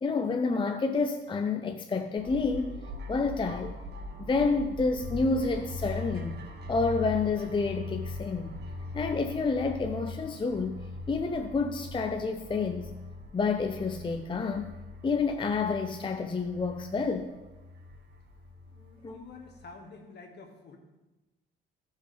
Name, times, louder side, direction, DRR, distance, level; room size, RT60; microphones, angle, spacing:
voice 1, 0.0-2.8 3.1-3.7 4.2-6.4 6.7-8.6 8.9-13.0 13.3-14.7 15.0-17.3 19.0-19.2, left 4 dB, 25° left, 0.6 m, -29 dB
sound 1, 2.2-19.7, left 2 dB, 55° right, 2.0 m, -41 dB
voice 2, 18.7-20.8, left 4 dB, 60° left, 2.1 m, -49 dB
16.5 x 5.5 x 3.5 m
cardioid pair, 90°, 20 cm